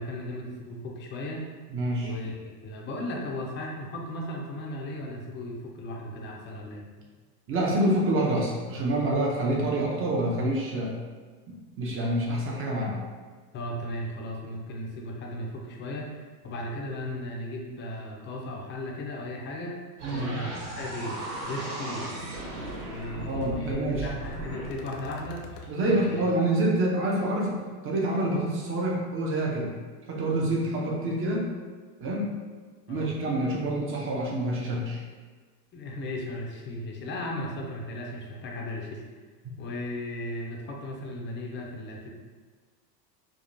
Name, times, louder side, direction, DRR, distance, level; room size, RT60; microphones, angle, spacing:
voice 1, 0.0-1.5 2.0-6.8 13.5-16.2 16.4-19.8 20.1-21.2 21.4-22.0 22.9-25.4 25.9-26.2 32.9-33.1 35.7-39.0 39.6-42.1, left 1 dB, 25° left, -1 dB, 0.6 m, -36 dB
voice 2, 1.7-2.1 7.5-10.9 11.8-13.0 20.0-20.3 23.3-24.1 25.7-29.7 30.1-31.5 32.0-32.3 32.9-35.0 39.4-39.5, right 1 dB, 25° right, -2 dB, 0.8 m, -27 dB
sound 1, 20.0-26.3, right 2 dB, 60° right, 1.4 m, -37 dB
sound 2, 21.2-21.3 21.6-21.9 22.2-22.3 24.7-25.7, left 4 dB, 60° left, 0.6 m, -44 dB
5.0 x 2.4 x 2.6 m, 1.4 s
supercardioid pair, 120°, 49 cm